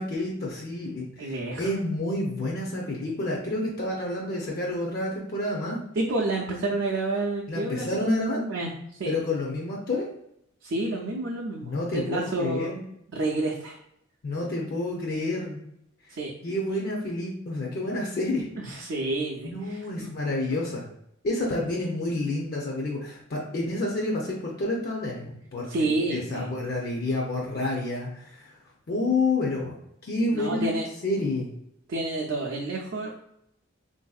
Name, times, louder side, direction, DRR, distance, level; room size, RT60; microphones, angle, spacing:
voice 1, 0.0-5.8 7.5-8.4 9.0-10.1 11.6-12.8 14.2-15.6 16.4-18.5 19.4-20.8 21.2-28.6 28.9-29.8 30.0-30.7 31.0-31.5, left 2 dB, 45° left, -2 dB, 0.5 m, -29 dB
voice 2, 1.2-1.7 6.0-8.7 9.0-9.1 10.6-12.7 13.1-13.8 16.1-16.3 18.6-20.1 20.5-20.6 25.7-26.5 30.3-30.9 31.9-33.2, right 2 dB, 60° right, -3 dB, 0.5 m, -29 dB
3.4 x 2.6 x 2.3 m, 0.76 s
head